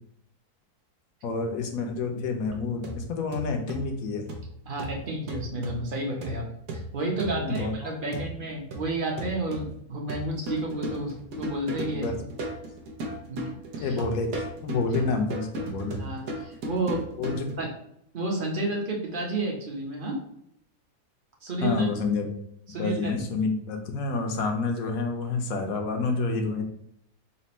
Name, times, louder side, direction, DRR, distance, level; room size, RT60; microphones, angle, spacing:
voice 1, 1.2-4.3 7.4-8.3 11.9-12.1 13.8-16.0 17.2-17.6 21.6-22.3 22.8-26.6, left 3 dB, 70° left, 4 dB, 1.1 m, -29 dB
sound 1, 2.4-17.5, right 1 dB, 80° right, 1.3 m, -37 dB
voice 2, 4.7-6.4 6.7-12.1 13.3-14.0 16.0-17.0 17.6-17.7 18.1-20.2 21.4-21.9 22.7-23.1, right 2 dB, 45° right, 0 dB, 0.8 m, -31 dB
4.2 x 2.2 x 4.1 m, 0.74 s
omnidirectional pair, 1.7 m